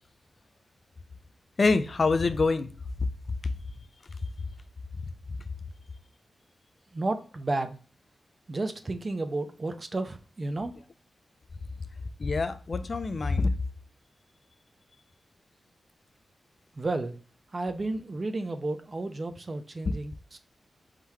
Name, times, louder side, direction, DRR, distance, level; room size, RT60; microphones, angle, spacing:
voice 1, 1.6-2.7 12.2-13.5, left 3 dB, 40° left, 0.4 m, -25 dB
voice 2, 6.9-7.8 8.5-10.8 16.8-17.2 17.5-20.4, right 2 dB, 30° right, 0.5 m, -32 dB
4.6 x 3.7 x 2.7 m
wide cardioid pair, 165°, 0 cm